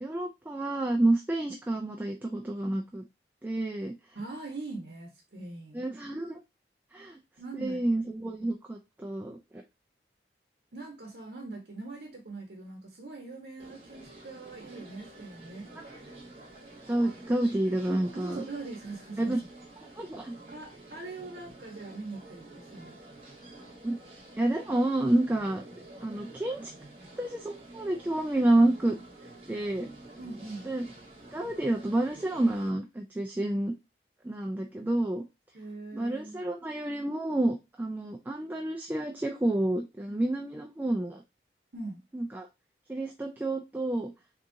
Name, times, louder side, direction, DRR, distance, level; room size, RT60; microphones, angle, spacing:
voice 1, 0.0-3.0 3.4-3.9 5.7-6.4 6.9-7.2 7.6-9.6 16.9-18.4 19.2-19.4 20.0-20.4 23.8-24.0 24.4-25.6 26.0-26.7 27.2-29.0 29.5-29.9 30.7-30.9 31.3-33.7 34.2-35.2 35.9-41.2 42.1-42.5 42.9-44.1, right 1 dB, 10° right, 0.3 m, -29 dB
voice 2, 4.1-5.8 7.4-7.8 10.7-15.7 18.1-19.4 20.5-23.0 30.2-30.7 35.5-36.4 41.7-42.1, right 3 dB, 70° right, 0.8 m, -42 dB
sound 1, 13.6-32.7, right 2 dB, 35° right, 1.0 m, -49 dB
3.6 x 2.8 x 2.6 m
head